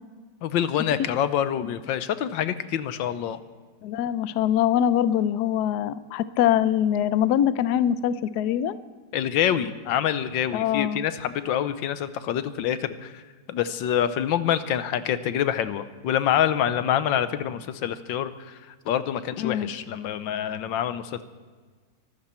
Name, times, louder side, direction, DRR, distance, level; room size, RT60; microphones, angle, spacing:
voice 1, 0.4-3.4 9.1-13.1 13.5-18.5 18.9-21.2, left 10 dB, 85° left, 12 dB, 1.5 m, -26 dB
voice 2, 3.8-8.8 10.5-11.0 19.4-19.7, left 10 dB, 70° left, 14 dB, 1.1 m, -23 dB
24.5 x 13.0 x 4.4 m, 1.5 s
omnidirectional pair, 2.0 m